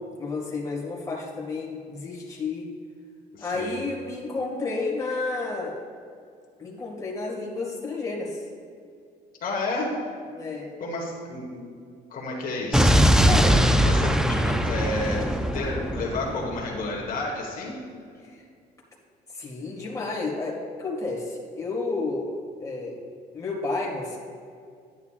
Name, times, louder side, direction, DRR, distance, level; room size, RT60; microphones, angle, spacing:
voice 1, 0.2-2.7 3.4-5.8 6.6-8.4 10.3-10.7 13.2-13.6 18.2-18.4 19.3-23.0 23.3-24.2, left 3 dB, 20° left, -3 dB, 1.9 m, -31 dB
voice 2, 3.3-3.8 9.4-9.9 10.8-11.7 12.1-13.0 13.5-17.8, left 2 dB, 55° left, -2 dB, 1.5 m, -31 dB
Explosion, 12.7-16.8, equal, 5° right, 0.4 m, -21 dB
11.0 x 9.5 x 2.5 m, 2.3 s
cardioid pair, 110°, 17 cm